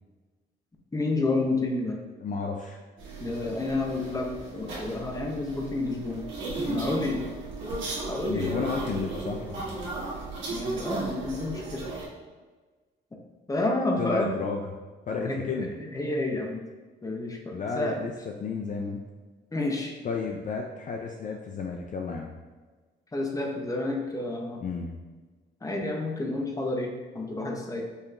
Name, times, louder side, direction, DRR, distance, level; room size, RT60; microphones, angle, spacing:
voice 1, 0.9-2.0 3.2-6.2 6.6-7.2 8.1-8.6 10.5-11.8 13.5-14.3 15.1-16.6 17.0-17.9 19.5-19.9 23.1-24.6 25.6-27.8, left 2 dB, 15° left, 1 dB, 0.7 m, -30 dB
voice 2, 2.2-2.8 8.3-9.8 14.0-14.6 15.1-15.7 17.5-18.1 18.4-19.0 20.0-22.3 24.6-25.0, left 5 dB, 40° left, 2 dB, 0.4 m, -32 dB
sound 1, 3.0-12.1, right 2 dB, 75° right, 1.5 m, -35 dB
5.4 x 2.9 x 2.5 m, 1.3 s
cardioid pair, 90°, 20 cm